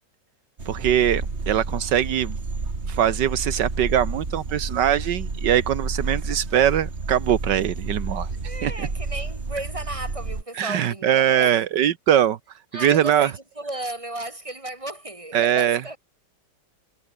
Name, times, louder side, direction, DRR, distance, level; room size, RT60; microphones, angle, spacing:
sound 1, 0.6-10.4, right 3 dB, 40° right, 2.9 m, -30 dB
voice 1, 0.7-2.4 2.9-8.3 8.6-8.9 10.6-12.4 12.8-13.3 15.3-15.8, right 10 dB, 80° right, 1.7 m, -22 dB
voice 2, 8.4-11.6 12.7-16.0, right 1 dB, 15° right, 4.3 m, -34 dB
omnidirectional pair, 1.9 m